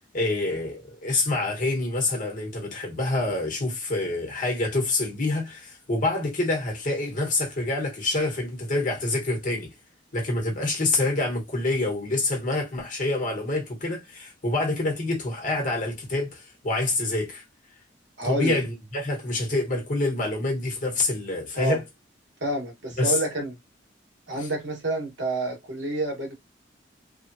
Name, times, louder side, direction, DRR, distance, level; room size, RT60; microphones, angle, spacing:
voice 1, 0.1-9.7 10.1-17.4 18.2-21.8 23.0-23.2 24.4-24.5, left 2 dB, 45° left, 1.3 m, -27 dB
voice 2, 18.2-18.6 21.5-21.8 22.4-23.6 24.3-26.3, right 1 dB, 85° right, 1.4 m, -28 dB
3.1 x 2.3 x 2.7 m
head